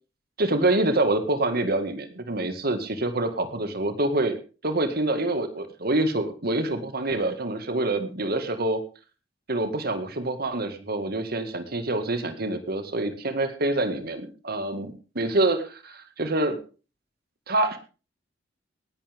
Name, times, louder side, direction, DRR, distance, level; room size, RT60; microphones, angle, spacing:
voice 1, 0.4-4.4 4.6-8.8 9.5-16.6 17.5-17.8, right 2 dB, 55° right, 8 dB, 2.1 m, -26 dB
19.0 x 11.5 x 3.7 m, 0.34 s
head